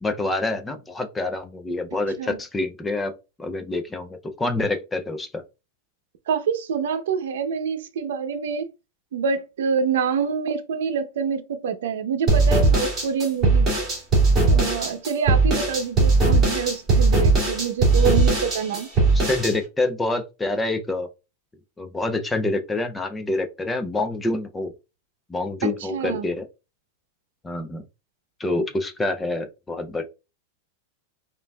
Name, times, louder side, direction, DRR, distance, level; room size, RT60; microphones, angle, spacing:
voice 1, 0.0-3.1 3.4-5.3 19.1-21.1 21.8-24.7 25.3-26.4 27.4-27.8 28.4-30.0, left 2 dB, 5° left, 0.3 m, -27 dB
voice 2, 6.3-8.7 9.1-13.8 14.5-18.9 25.6-26.3, right 6 dB, 75° right, 0.6 m, -26 dB
sound 1, 12.3-19.5, right 3 dB, 15° right, 1.9 m, -19 dB
5.3 x 2.5 x 2.2 m
supercardioid pair, 175°, 0 cm